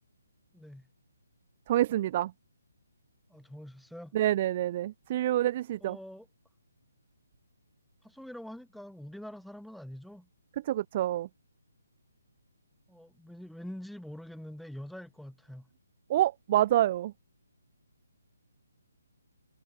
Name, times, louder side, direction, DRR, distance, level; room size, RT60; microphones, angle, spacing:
voice 1, 0.5-0.9 3.3-4.1 5.8-6.3 8.0-10.3 12.9-15.7, equal, ahead, 3.6 m, -45 dB
voice 2, 1.7-2.3 4.1-6.0 10.7-11.3 16.1-17.1, right 13 dB, 35° right, 0.6 m, -27 dB
figure-of-eight pair, 145°, 0 cm